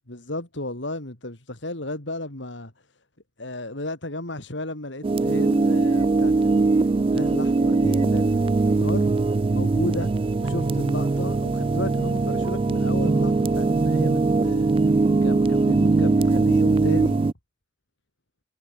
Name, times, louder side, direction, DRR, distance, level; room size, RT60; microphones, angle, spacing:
voice 1, 0.0-2.7 3.4-9.1 9.5-10.1 10.4-14.7 15.2-17.3, left 1 dB, 70° left, 3.8 m, -34 dB
sound 1, 5.0-17.3, right 3 dB, 30° right, 0.3 m, -21 dB
sound 2, 5.9-17.2, equal, 30° left, 2.9 m, -44 dB
head